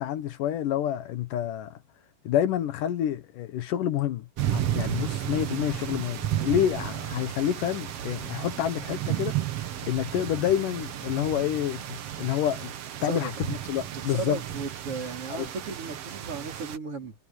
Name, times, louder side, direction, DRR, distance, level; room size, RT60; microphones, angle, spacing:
voice 1, 0.0-1.8 2.2-9.3 9.9-12.7 13.0-14.4 15.3-15.5, left 11 dB, 65° left, 2.5 m, -28 dB
sound 1, 4.4-16.8, right 12 dB, 70° right, 1.4 m, -33 dB
voice 2, 13.0-13.3 14.1-17.1, right 4 dB, 35° right, 4.8 m, -35 dB
omnidirectional pair, 4.4 m